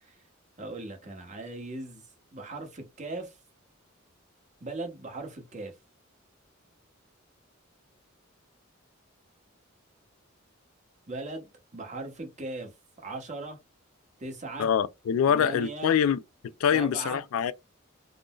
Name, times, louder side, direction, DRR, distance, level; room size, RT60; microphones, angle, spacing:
voice 1, 0.6-2.0 2.3-3.4 4.6-5.7 11.1-12.7 13.0-13.6 14.2-14.7 15.3-15.9 16.7-17.2, right 2 dB, 35° right, 0.9 m, -38 dB
voice 2, 14.6-16.2 16.6-17.5, left 8 dB, 85° left, 0.3 m, -24 dB
3.7 x 2.0 x 2.3 m
head